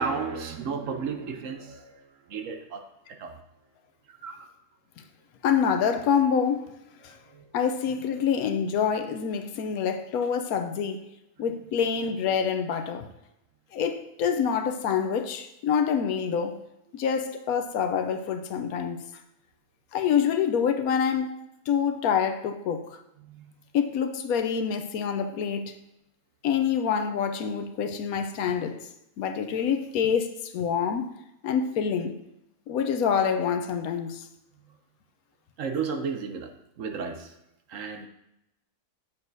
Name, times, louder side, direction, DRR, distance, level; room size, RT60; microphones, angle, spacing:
voice 1, 0.0-3.4 4.1-4.5 7.1-7.5 23.2-23.5 35.6-36.5 36.8-37.3 37.7-38.1, right 5 dB, 65° right, 1.0 m, -34 dB
voice 2, 5.4-6.7 7.0-7.1 7.5-11.1 11.4-13.1 13.7-16.6 16.9-19.0 19.9-21.3 21.7-23.0 23.7-25.7 26.4-28.8 29.2-31.1 31.4-32.2 32.7-34.2, left 7 dB, 80° left, 1.1 m, -26 dB
8.0 x 7.0 x 2.6 m
omnidirectional pair, 1.6 m